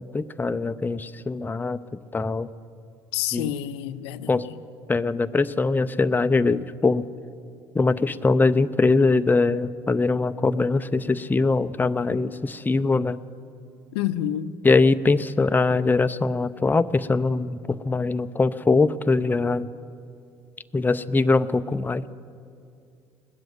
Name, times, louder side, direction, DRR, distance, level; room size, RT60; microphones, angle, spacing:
voice 1, 0.1-1.8 2.1-2.5 3.3-3.5 4.3-4.4 4.9-7.0 7.7-13.2 14.6-19.7 20.7-22.1, left 3 dB, 15° left, 12 dB, 0.5 m, -22 dB
voice 2, 3.1-4.3 13.9-14.6, left 11 dB, 80° left, 13 dB, 0.5 m, -28 dB
19.5 x 7.8 x 9.4 m, 2.4 s
hypercardioid pair, 65°, 14 cm